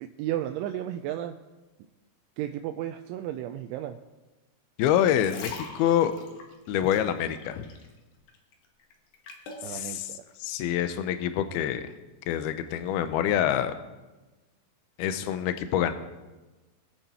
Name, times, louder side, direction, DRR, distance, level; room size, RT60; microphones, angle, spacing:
voice 1, 0.0-1.4 2.4-4.0 9.6-10.2, right 12 dB, 85° right, 6 dB, 3.0 m, -33 dB
voice 2, 4.8-6.2 6.7-7.7 9.6-10.1 10.4-11.9 12.3-13.7 15.0-15.9, left 10 dB, 80° left, 10 dB, 2.2 m, -26 dB
sound 1, 4.9-8.0 8.3-9.7 10.3-10.4, left 4 dB, 60° left, 2.9 m, -43 dB
21.5 x 8.9 x 4.3 m, 1.1 s
omnidirectional pair, 5.5 m